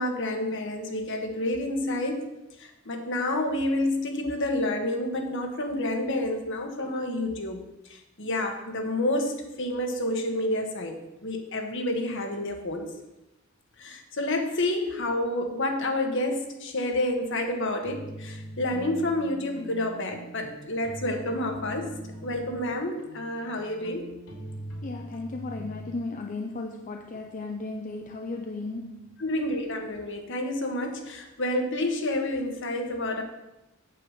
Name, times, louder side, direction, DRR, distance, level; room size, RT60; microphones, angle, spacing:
voice 1, 0.0-2.3 2.6-12.9 13.8-21.9 22.2-24.1 29.2-33.2, left 1 dB, 60° left, 1.5 m, -29 dB
sound 1, 17.8-25.9, right 1 dB, 75° left, 3.4 m, -42 dB
voice 2, 24.8-29.2, left 3 dB, 40° left, 0.6 m, -35 dB
8.5 x 8.0 x 5.0 m
head